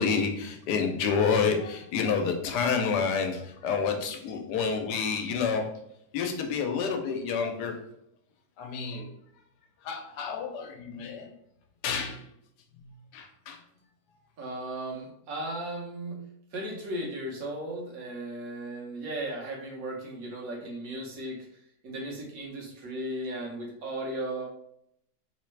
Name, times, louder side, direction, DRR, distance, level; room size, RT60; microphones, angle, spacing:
voice 1, 0.0-5.8 6.1-7.8 8.6-9.1 9.8-11.3 11.8-12.2 12.8-13.6, left 5 dB, 90° left, 4 dB, 1.2 m, -29 dB
voice 2, 14.4-16.2 16.5-21.4 21.8-24.5, right 1 dB, 60° right, -1 dB, 1.5 m, -36 dB
3.6 x 3.3 x 3.2 m, 0.73 s
omnidirectional pair, 1.7 m